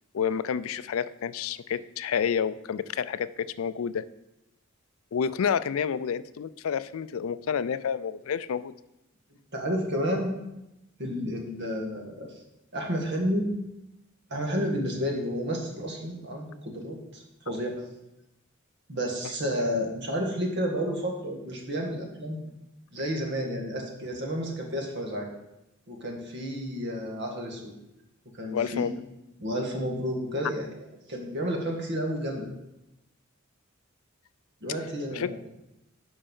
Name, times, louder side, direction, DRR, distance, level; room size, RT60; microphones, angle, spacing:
voice 1, 0.1-4.0 5.1-8.7 28.5-28.9 35.1-35.3, left 7 dB, 85° left, 15 dB, 0.4 m, -29 dB
voice 2, 9.5-10.3 11.0-12.4 12.7-13.5 14.3-17.8 18.9-22.4 22.9-25.3 25.9-27.7 28.3-28.9 29.4-30.7 31.1-32.5 34.6-35.4, equal, 55° right, 2 dB, 1.7 m, -31 dB
8.8 x 5.4 x 5.4 m, 0.92 s
head